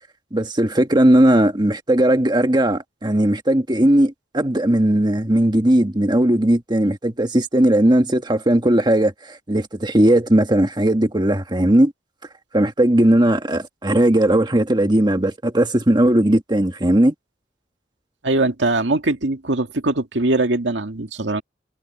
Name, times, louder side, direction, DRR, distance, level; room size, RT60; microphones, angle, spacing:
voice 1, 0.3-11.9 12.5-17.1, right 1 dB, 25° right, 1.6 m, -17 dB
voice 2, 18.2-21.4, right 2 dB, 90° right, 2.1 m, -21 dB
head